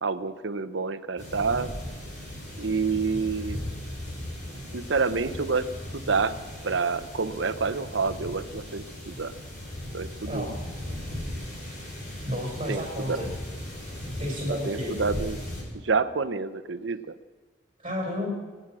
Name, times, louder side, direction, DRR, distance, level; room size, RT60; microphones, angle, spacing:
voice 1, 0.0-1.7 2.5-3.6 4.7-5.7 5.9-6.4 6.6-9.3 9.9-10.5 12.7-13.2 14.5-15.4 15.8-17.2, right 4 dB, 85° right, 13 dB, 0.9 m, -28 dB
sound 1, 1.2-15.6, left 1 dB, 45° left, 5.5 m, -37 dB
voice 2, 10.3-10.6 12.3-13.3 14.2-15.0 17.8-18.3, equal, 30° right, -1 dB, 5.3 m, -31 dB
25.5 x 9.0 x 6.2 m, 1.4 s
head